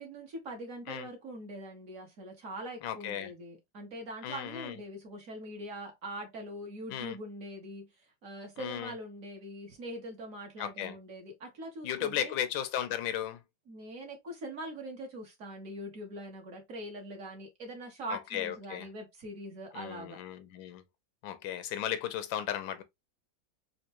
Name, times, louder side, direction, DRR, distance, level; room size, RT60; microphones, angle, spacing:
voice 1, 0.0-7.9 8.2-12.3 13.7-20.2, right 1 dB, 50° right, 1.4 m, -43 dB
voice 2, 2.8-3.3 4.2-4.8 6.9-7.2 8.6-8.9 10.6-11.0 11.8-13.4 18.1-18.9 19.7-20.8 21.2-22.8, left 10 dB, 90° left, 1.4 m, -35 dB
4.2 x 2.5 x 2.9 m
omnidirectional pair, 2.0 m